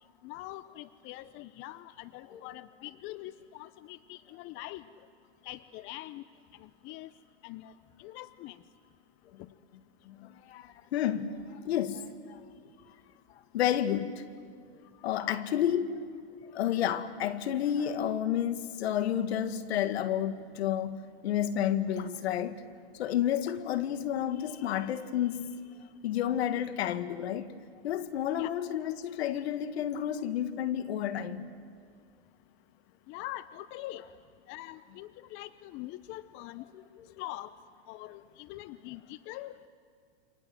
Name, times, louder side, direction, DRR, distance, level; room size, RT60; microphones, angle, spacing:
voice 1, 0.2-4.8 5.4-6.2 6.6-7.1 7.4-7.7 8.0-8.6 15.1-15.6 23.6-23.8 28.4-28.5 33.1-34.0 34.5-36.6 37.2-37.5 37.9-39.6, left 16 dB, 35° left, 0.7 m, -43 dB
voice 2, 10.0-12.4 13.3-14.2 15.0-16.0 16.4-22.6 22.9-25.5 26.0-27.6 27.8-31.5, left 10 dB, 70° left, 1.8 m, -31 dB
29.0 x 25.5 x 7.8 m
hypercardioid pair, 120°, 33 cm